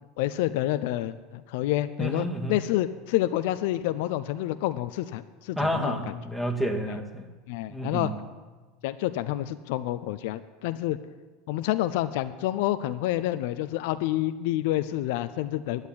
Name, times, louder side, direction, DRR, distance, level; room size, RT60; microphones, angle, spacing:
voice 1, 0.2-6.0 6.9-7.0 7.5-8.1 8.8-11.0 11.5-15.9, left 14 dB, 65° left, 12 dB, 0.5 m, -28 dB
voice 2, 2.0-2.6 5.6-7.3 7.7-8.1, equal, ahead, 2 dB, 2.0 m, -30 dB
10.5 x 8.0 x 9.6 m, 1.3 s
hypercardioid pair, 80°, 0 cm